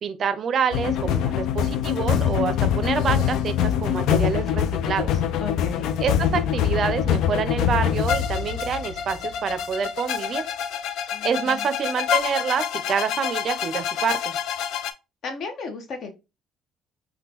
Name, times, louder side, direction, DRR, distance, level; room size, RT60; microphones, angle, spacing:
voice 1, 0.0-5.1 6.0-10.4 11.2-14.3, right 6 dB, 50° right, 0.4 m, -27 dB
sound 1, 0.7-14.9, left 9 dB, 75° left, 0.3 m, -25 dB
voice 2, 5.4-5.9 11.1-11.7 15.2-16.1, left 4 dB, 60° left, 0.8 m, -34 dB
3.6 x 2.2 x 2.9 m
cardioid pair, 110°, 0 cm